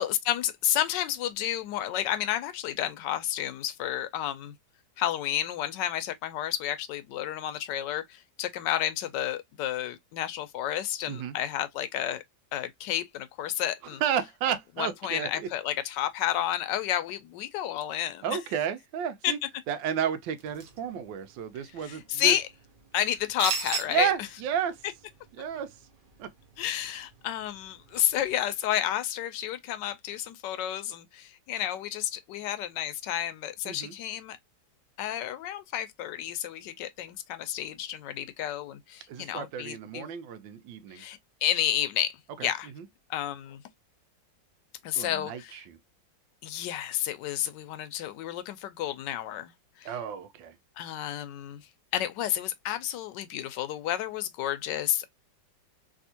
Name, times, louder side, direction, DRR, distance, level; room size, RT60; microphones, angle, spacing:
voice 1, 0.0-4.5 5.0-12.2 12.5-14.0 14.8-18.4 19.2-19.3 21.8-22.5 22.9-24.1 26.6-34.4 35.0-40.1 40.9-42.7 43.1-43.6 44.8-45.6 46.4-49.5 49.8-49.9 50.8-55.1, left 11 dB, 80° left, 1.2 m, -31 dB
voice 2, 14.0-15.5 18.2-19.4 19.7-22.3 23.9-24.8 25.4-25.8 26.2-26.3 33.6-33.9 39.1-41.0 42.4-42.5 42.8-42.9 44.9-45.8 49.8-50.6, right 8 dB, 85° right, 1.3 m, -32 dB
sound 1, 20.4-28.4, right 5 dB, 50° right, 0.6 m, -41 dB
3.5 x 2.7 x 2.7 m
omnidirectional pair, 2.0 m